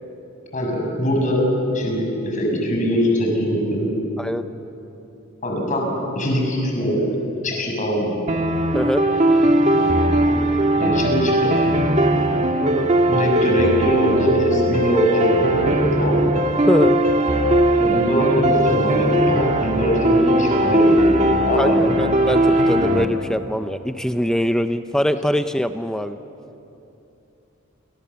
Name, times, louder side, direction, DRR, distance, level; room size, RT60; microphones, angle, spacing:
voice 1, 0.5-1.4 1.7-3.9 5.4-5.9 6.1-7.1 7.4-8.1 10.8-11.3 11.7-11.8 13.1-16.3 17.8-21.0 21.4-21.9, equal, 40° left, 0 dB, 6.6 m, -22 dB
sound 1, 8.3-23.0, right 1 dB, 35° right, 1.6 m, -19 dB
voice 2, 16.7-17.0 21.6-21.7 22.0-26.2, equal, 5° left, 9 dB, 0.6 m, -22 dB
28.5 x 25.0 x 7.0 m, 2.9 s
head